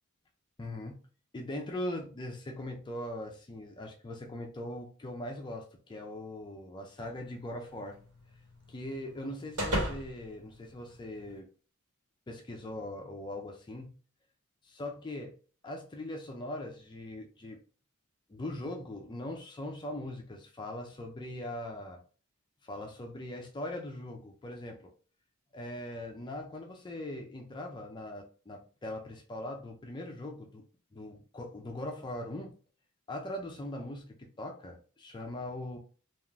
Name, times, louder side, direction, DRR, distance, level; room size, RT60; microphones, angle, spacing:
voice 1, 0.6-1.0 1.3-8.0 8.7-11.5 12.3-14.0 14.6-15.3 15.6-17.6 18.3-22.0 22.6-24.9 25.5-30.6 30.9-32.5 33.1-35.8, left 1 dB, 20° left, 2 dB, 0.3 m, -40 dB
sound 1, 7.0-11.4, equal, 80° right, 1.3 m, -39 dB
3.5 x 2.4 x 2.2 m, 0.40 s
head